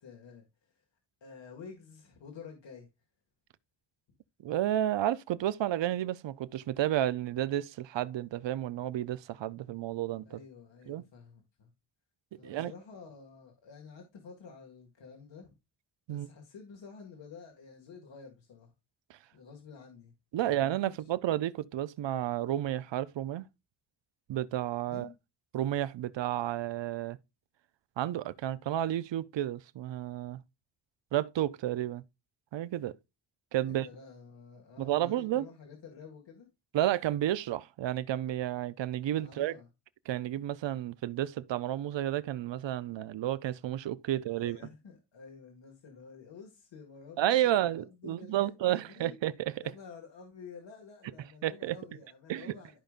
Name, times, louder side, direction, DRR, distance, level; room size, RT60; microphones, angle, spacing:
voice 1, 0.0-0.8 1.2-2.9 10.3-11.7 12.4-15.5 16.1-18.7 19.3-20.1 20.4-20.9 24.9-25.1 33.6-36.5 39.2-39.7 44.1-49.2 49.6-52.8, left 5 dB, 90° left, 2.0 m, -50 dB
voice 2, 4.4-10.4 10.9-11.0 12.4-12.7 16.1-16.3 19.1-19.2 20.3-23.5 24.3-25.1 25.5-27.2 28.0-30.4 31.1-32.0 32.5-33.0 33.5-33.9 34.8-35.5 36.7-39.5 40.1-44.6 47.2-49.5 51.4-51.8 52.3-52.5, right 12 dB, 85° right, 0.6 m, -31 dB
13.0 x 5.1 x 2.4 m
wide cardioid pair, 170°, 43 cm